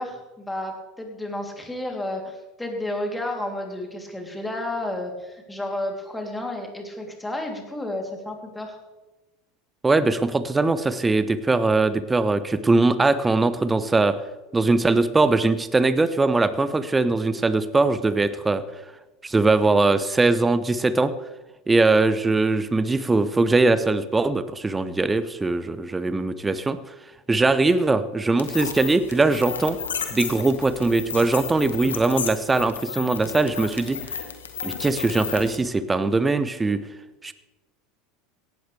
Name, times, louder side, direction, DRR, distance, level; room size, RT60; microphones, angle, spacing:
voice 1, 0.0-8.8, left 1 dB, 10° left, 1 dB, 3.2 m, -31 dB
voice 2, 9.8-14.2 14.5-18.6 19.2-21.1 21.7-26.8 27.3-29.8 30.1-34.0 34.6-36.8 37.2-37.3, right 3 dB, 15° right, 13 dB, 0.9 m, -21 dB
sound 1, 28.4-35.6, left 7 dB, 85° left, 1.4 m, -33 dB
17.0 x 13.0 x 3.4 m, 1.1 s
hypercardioid pair, 85°, 0 cm